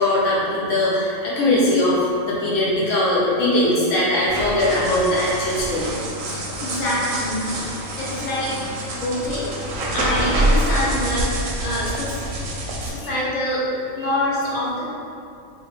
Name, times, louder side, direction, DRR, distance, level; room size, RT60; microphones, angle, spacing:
voice 1, 0.0-5.9 11.4-11.5 13.0-13.1 14.0-14.1, left 1 dB, 65° left, -8 dB, 1.0 m, -20 dB
sound 1, 4.3-12.9, right 1 dB, 75° right, 0.9 m, -26 dB
voice 2, 6.3-7.5 8.0-8.7 9.0-9.5 9.9-12.2 12.8-14.8, left 1 dB, 35° left, -8 dB, 0.6 m, -25 dB
2.9 x 2.5 x 3.1 m, 2.5 s
omnidirectional pair, 1.5 m